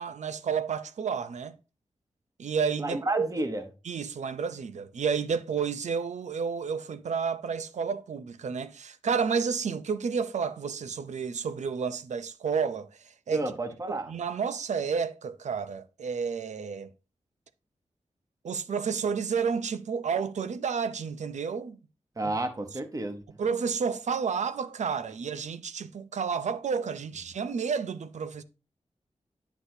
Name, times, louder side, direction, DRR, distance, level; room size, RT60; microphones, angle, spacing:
voice 1, 0.0-1.5 2.4-3.3 3.9-12.9 13.3-13.5 13.9-16.9 18.4-21.8 22.2-22.3 23.4-28.4, right 6 dB, 90° right, 0.5 m, -31 dB
voice 2, 2.8-3.6 13.3-14.1 22.2-23.2, right 2 dB, 30° right, 0.9 m, -31 dB
9.7 x 6.1 x 2.7 m
wide cardioid pair, 85°, 12 cm